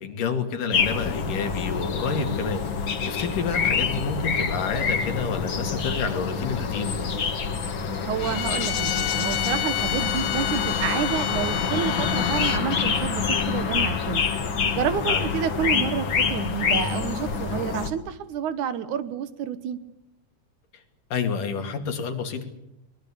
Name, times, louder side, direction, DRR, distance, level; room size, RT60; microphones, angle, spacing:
voice 1, 0.0-7.1 15.0-15.3 20.7-20.8 21.1-22.5, left 5 dB, 85° left, 6 dB, 4.1 m, -29 dB
sound 1, 0.7-17.9, left 5 dB, 40° left, 2.2 m, -26 dB
voice 2, 8.1-14.2 14.7-19.8, right 9 dB, 75° right, 13 dB, 2.6 m, -29 dB
Bowed string instrument, 8.2-12.6, left 13 dB, 70° left, 2.3 m, -29 dB
23.0 x 22.0 x 8.5 m, 0.85 s
omnidirectional pair, 3.6 m